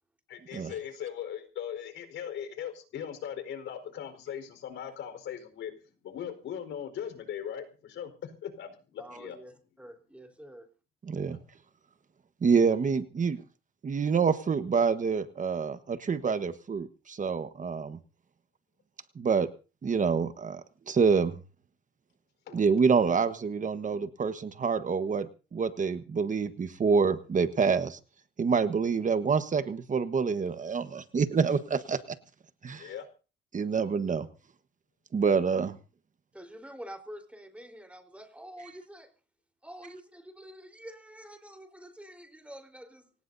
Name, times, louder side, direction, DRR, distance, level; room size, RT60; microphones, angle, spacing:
voice 1, 0.3-5.7 6.0-9.4 11.3-11.4 22.5-22.6 32.7-33.1, left 9 dB, 80° left, 7 dB, 4.6 m, -39 dB
voice 2, 9.0-10.7 36.3-39.1 39.6-43.1, equal, 5° right, 5 dB, 4.2 m, -47 dB
voice 3, 11.1-11.4 12.4-13.4 13.8-18.0 19.1-19.5 19.8-21.4 22.5-28.0 28.4-32.0 32.6-32.9 33.5-34.3 35.1-35.8, right 5 dB, 40° right, 10 dB, 1.3 m, -27 dB
25.0 x 18.5 x 2.7 m, 0.36 s
cardioid pair, 90°, 20 cm